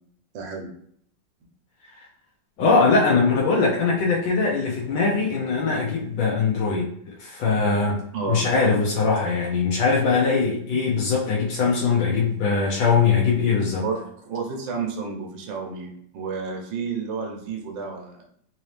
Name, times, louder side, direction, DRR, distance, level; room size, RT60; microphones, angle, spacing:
voice 1, 0.3-0.7 8.1-8.4 13.8-18.2, right 5 dB, 80° right, 1 dB, 1.5 m, -31 dB
voice 2, 2.6-6.9 7.2-8.0 8.3-13.8, left 4 dB, 85° left, -3 dB, 1.5 m, -21 dB
3.9 x 2.8 x 3.2 m, 0.65 s
omnidirectional pair, 2.0 m